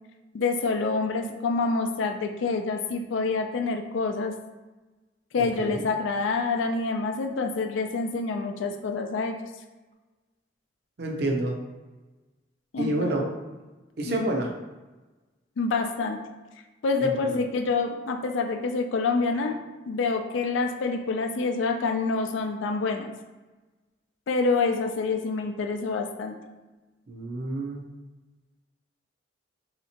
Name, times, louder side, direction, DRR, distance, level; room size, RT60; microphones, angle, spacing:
voice 1, 0.3-4.3 5.3-9.4 12.7-13.1 14.0-14.2 15.6-16.2 16.8-19.6 19.8-23.1 24.3-26.3, left 4 dB, 80° left, 5 dB, 0.4 m, -27 dB
voice 2, 5.4-5.8 11.0-11.6 12.8-13.3 14.0-14.5 17.0-17.3 27.1-27.8, right 1 dB, 55° right, 1 dB, 0.5 m, -28 dB
3.3 x 2.8 x 2.8 m, 1.2 s
head